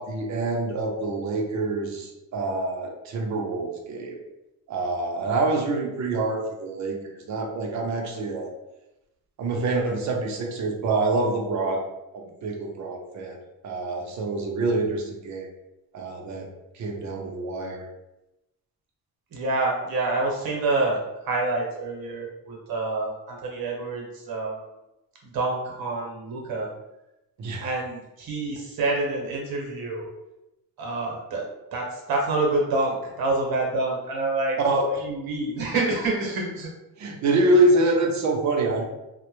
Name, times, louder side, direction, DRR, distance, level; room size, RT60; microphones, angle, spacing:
voice 1, 0.0-4.2 4.7-8.5 9.4-11.8 12.1-13.4 13.6-15.5 15.9-16.5 16.7-17.9 27.4-27.7 28.5-28.6 34.6-34.9 37.0-38.8, right 2 dB, 50° right, 1 dB, 0.5 m, -26 dB
voice 2, 19.3-21.0 21.3-24.6 25.2-26.7 27.6-30.1 30.8-31.4 31.7-34.6 35.0-36.7, right 2 dB, 75° right, -1 dB, 0.8 m, -27 dB
2.1 x 2.1 x 2.9 m, 0.94 s
cardioid pair, 130°, 36 cm